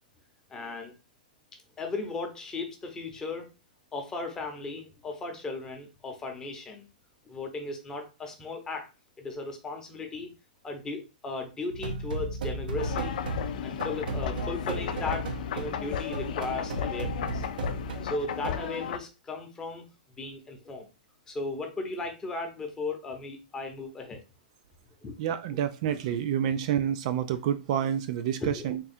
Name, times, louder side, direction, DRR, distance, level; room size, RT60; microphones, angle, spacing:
voice 1, 0.5-0.9 1.8-3.5 3.9-6.9 7.3-8.9 9.2-10.3 10.6-13.1 13.6-17.5 18.0-20.9 21.3-24.2 25.0-25.1 28.4-28.7, left 3 dB, 15° left, 3 dB, 0.8 m, -36 dB
sound 1, 11.7-18.6, right 3 dB, 80° right, 0.7 m, -35 dB
sound 2, 12.8-19.0, left 8 dB, 65° left, 0.4 m, -34 dB
voice 2, 25.2-28.8, right 9 dB, 50° right, 10 dB, 0.4 m, -28 dB
3.6 x 2.3 x 4.2 m, 0.29 s
hypercardioid pair, 145°, 5 cm